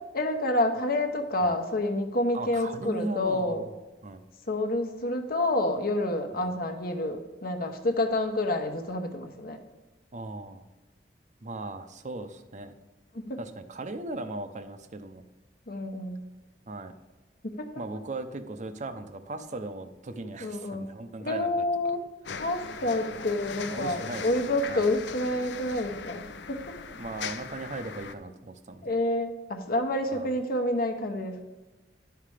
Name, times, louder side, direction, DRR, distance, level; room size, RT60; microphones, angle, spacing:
voice 1, 0.1-3.7 4.5-9.6 13.1-13.4 15.7-16.2 17.4-17.7 20.4-20.9 21.2-22.0 22.4-26.8 28.8-31.4, left 1 dB, 55° left, 6 dB, 1.0 m, -28 dB
voice 2, 2.3-3.6 4.0-4.2 6.4-6.5 10.1-10.7 11.4-12.7 13.4-15.2 16.7-16.9 17.8-21.5 23.7-24.3 24.7-24.8 26.9-29.0 30.1-30.3, right 2 dB, 45° right, 9 dB, 0.6 m, -38 dB
sound 1, 22.2-28.1, left 5 dB, 80° left, 0.6 m, -39 dB
10.5 x 5.8 x 4.9 m, 1.1 s
head